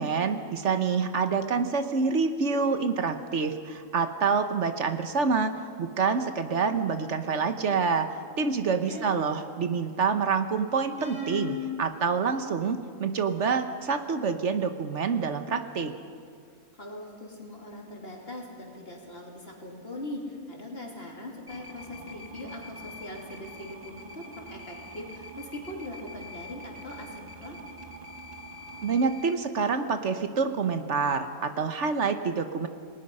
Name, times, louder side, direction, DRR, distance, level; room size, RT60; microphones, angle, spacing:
voice 1, 0.0-8.1 8.4-15.9 28.8-32.7, right 5 dB, 65° right, 8 dB, 1.3 m, -27 dB
sound 1, 7.6-8.1 8.9-9.8 11.0-11.8, left 4 dB, 5° right, 4.3 m, -37 dB
voice 2, 8.7-9.2 16.7-27.6, left 1 dB, 50° left, 0 dB, 3.3 m, -41 dB
sound 2, 21.5-29.3, equal, 30° right, 1.8 m, -45 dB
28.5 x 19.0 x 5.5 m, 2.2 s
omnidirectional pair, 1.3 m